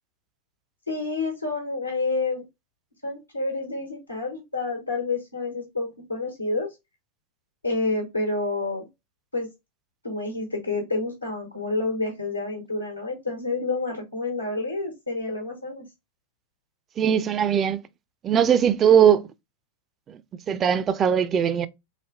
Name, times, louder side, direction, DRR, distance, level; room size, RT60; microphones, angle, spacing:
voice 1, 0.9-2.4 3.0-6.7 7.6-8.9 9.3-9.5 10.0-15.8, left 3 dB, 85° left, 1.1 m, -29 dB
voice 2, 17.0-17.8 18.2-19.3 20.1-20.2 20.5-21.7, right 8 dB, 25° right, 0.4 m, -20 dB
4.1 x 3.2 x 2.4 m
figure-of-eight pair, 90°, 0 cm